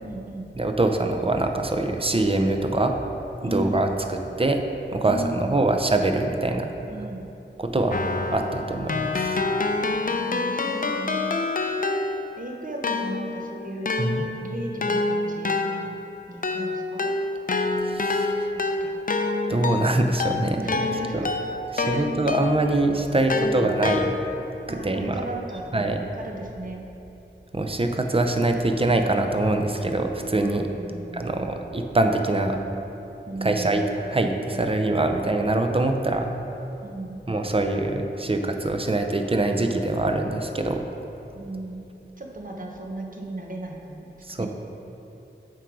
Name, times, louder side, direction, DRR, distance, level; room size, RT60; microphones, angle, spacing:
voice 1, 0.0-0.5 3.4-3.9 5.1-5.7 6.9-7.3 8.6-8.9 10.0-11.5 12.4-15.7 16.3-17.1 18.3-19.0 20.5-21.3 21.8-22.1 23.3-23.8 24.7-26.9 30.8-31.5 33.3-33.9 36.8-37.2 41.3-41.9 42.2-44.5, right 1 dB, 45° right, 0 dB, 0.9 m, -36 dB
voice 2, 0.6-2.9 3.4-4.6 4.9-6.7 7.6-8.0 8.3-9.4 14.0-14.2 17.8-18.4 19.5-20.6 21.1-21.3 21.7-24.1 24.7-25.2 25.7-26.0 27.5-30.7 31.1-32.6 33.4-36.3 37.3-40.8 44.2-44.5, right 2 dB, 30° right, 5 dB, 0.6 m, -24 dB
Keyboard (musical), 7.9-12.4 12.8-22.8 23.3-24.5, left 3 dB, 45° left, 0.4 m, -27 dB
7.6 x 4.7 x 4.7 m, 3.0 s
wide cardioid pair, 55°, 19 cm